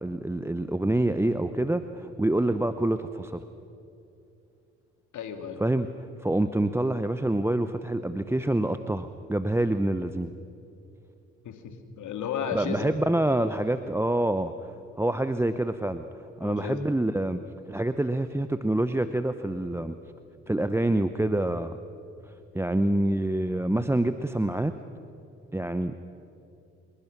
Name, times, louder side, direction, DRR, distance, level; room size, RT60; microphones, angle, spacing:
voice 1, 0.0-3.4 5.6-5.9 6.2-10.3 12.5-16.0 16.4-19.9 20.5-21.8 22.3-24.8 25.5-25.9, right 1 dB, 5° right, 10 dB, 0.9 m, -26 dB
voice 2, 5.1-5.6 11.4-13.0 16.4-16.8, left 7 dB, 60° left, 6 dB, 2.5 m, -34 dB
26.5 x 21.5 x 6.1 m, 2.7 s
hypercardioid pair, 50°, 34 cm